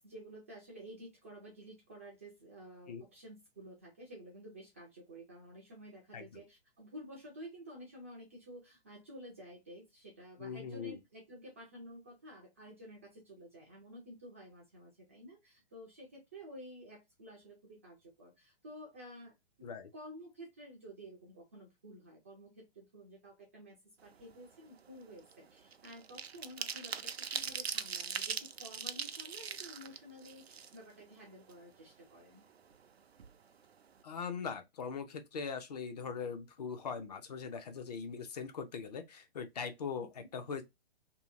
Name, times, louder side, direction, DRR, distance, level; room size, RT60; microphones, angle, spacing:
voice 1, 0.0-32.4 40.0-40.3, equal, 15° right, 0.3 m, -52 dB
voice 2, 10.4-11.0 19.6-19.9 34.0-40.6, left 6 dB, 40° left, 0.5 m, -41 dB
sound 1, 24.1-24.4 24.7-31.1 31.5-31.6 31.9-32.9 33.2-33.3 33.6-33.9, right 6 dB, 80° right, 0.5 m, -41 dB
2.7 x 2.7 x 2.5 m
figure-of-eight pair, 125°, 31 cm